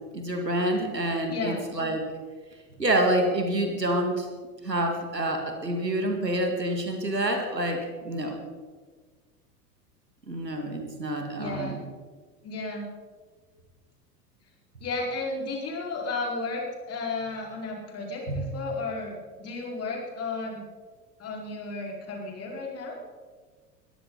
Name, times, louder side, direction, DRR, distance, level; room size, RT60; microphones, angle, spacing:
voice 1, 0.1-2.0 2.8-4.3 4.6-8.4 10.3-11.8 18.3-18.4, right 1 dB, 90° right, 4 dB, 2.4 m, -27 dB
voice 2, 1.3-1.6 11.4-11.8 12.4-12.9 14.8-20.6 21.2-23.0, left 3 dB, 30° left, -1 dB, 4.8 m, -33 dB
21.5 x 14.5 x 4.0 m, 1.5 s
figure-of-eight pair, 80°, 48 cm